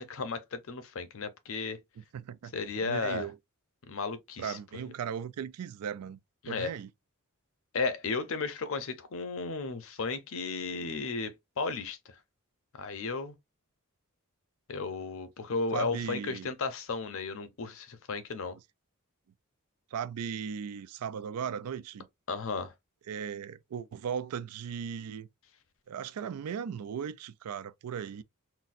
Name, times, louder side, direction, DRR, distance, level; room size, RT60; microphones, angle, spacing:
voice 1, 0.0-1.8 2.5-3.3 3.9-4.8 6.4-6.7 7.7-12.0 12.8-13.3 14.7-18.6 22.3-22.7, left 4 dB, 60° left, 0.6 m, -34 dB
voice 2, 2.1-3.4 4.4-6.2 6.5-6.9 15.7-16.5 19.9-22.1 23.1-25.3 25.9-28.2, right 7 dB, 90° right, 0.4 m, -37 dB
4.0 x 2.2 x 2.5 m
head